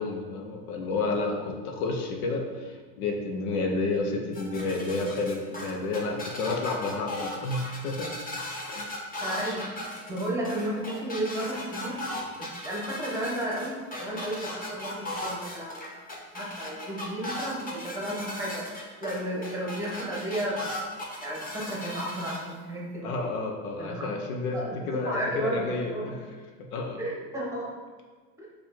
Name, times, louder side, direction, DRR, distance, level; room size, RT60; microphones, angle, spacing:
voice 1, 0.0-8.1 8.7-8.9 23.0-26.2 26.7-27.0, left 3 dB, 80° left, 2 dB, 0.8 m, -30 dB
sound 1, 4.3-22.4, left 1 dB, 20° left, 0.8 m, -37 dB
voice 2, 9.2-9.8 10.1-12.0 12.4-15.9 16.3-20.6 21.2-23.2 23.8-24.1 24.5-24.8 25.0-26.1 27.0-27.7, right 1 dB, 5° right, -5 dB, 1.3 m, -33 dB
4.6 x 2.5 x 4.3 m, 1.4 s
supercardioid pair, 105°, 43 cm